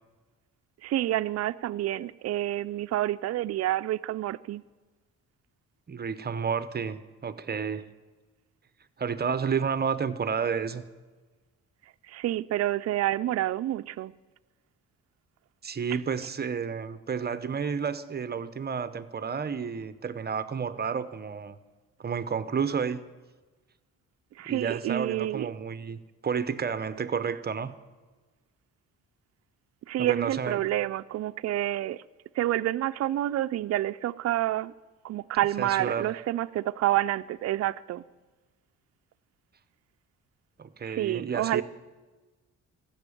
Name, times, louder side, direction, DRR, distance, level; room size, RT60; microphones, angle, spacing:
voice 1, 0.8-4.6 12.1-14.1 24.4-25.5 29.9-32.0 32.4-34.7 35.0-38.0 40.8-41.6, right 14 dB, 55° right, 0.5 m, -28 dB
voice 2, 5.9-7.8 9.0-10.8 15.6-21.6 22.0-23.0 24.5-26.0 26.2-27.7 30.0-30.6 35.6-36.1 40.6-41.6, right 6 dB, 35° right, 0.9 m, -31 dB
15.0 x 7.2 x 9.9 m
cardioid pair, 90°, 30 cm